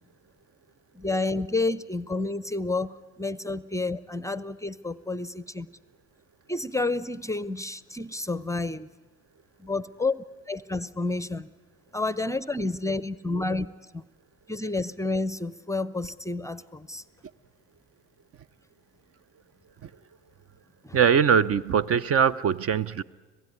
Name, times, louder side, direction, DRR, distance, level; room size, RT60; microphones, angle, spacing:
voice 1, 0.9-5.7 6.5-8.9 9.6-11.5 11.9-13.7 13.9-14.0 14.5-17.0 20.8-21.0, left 3 dB, 10° left, 17 dB, 0.7 m, -30 dB
voice 2, 20.9-23.0, right 7 dB, 40° right, 20 dB, 0.7 m, -22 dB
26.0 x 16.5 x 9.6 m, 1.3 s
hypercardioid pair, 65°, 35 cm